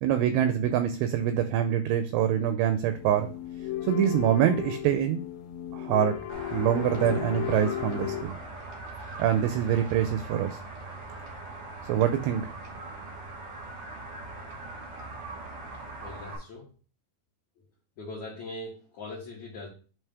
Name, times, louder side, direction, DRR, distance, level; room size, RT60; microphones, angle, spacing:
voice 1, 0.0-3.3 3.8-5.2 5.7-6.2 6.5-8.3 9.2-10.6 11.9-12.5, right 10 dB, 85° right, 9 dB, 2.5 m, -25 dB
sound 1, 2.9-8.2, left 12 dB, 80° left, 3.1 m, -35 dB
sound 2, 6.3-16.4, right 2 dB, 65° right, 1.7 m, -41 dB
voice 2, 16.0-16.7 18.0-19.7, left 2 dB, 60° left, -4 dB, 2.0 m, -40 dB
8.9 x 3.3 x 3.4 m, 0.37 s
omnidirectional pair, 5.2 m